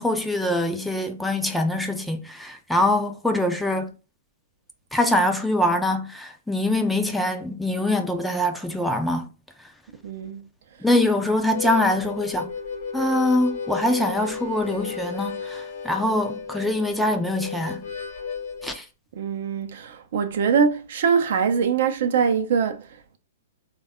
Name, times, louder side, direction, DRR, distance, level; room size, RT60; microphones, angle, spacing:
voice 1, 0.0-3.9 4.9-9.3 10.8-12.5 12.9-17.9 18.6-18.8, left 1 dB, 5° left, 0.4 m, -24 dB
voice 2, 10.0-10.5 19.1-23.2, right 6 dB, 60° right, 0.5 m, -23 dB
Harmonica, 11.4-18.8, left 5 dB, 50° left, 0.8 m, -33 dB
3.3 x 2.2 x 3.5 m
hypercardioid pair, 115°, 0 cm